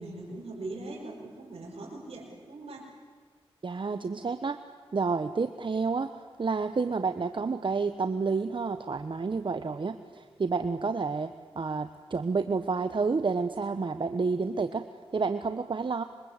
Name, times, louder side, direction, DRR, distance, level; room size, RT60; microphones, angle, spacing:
voice 1, 0.0-2.9, right 2 dB, 85° right, -7 dB, 5.8 m, -41 dB
voice 2, 3.6-4.6 4.9-14.8 15.1-16.0, right 4 dB, 55° right, 9 dB, 1.1 m, -30 dB
25.5 x 24.0 x 8.3 m, 1.5 s
cardioid pair, 55°, 10 cm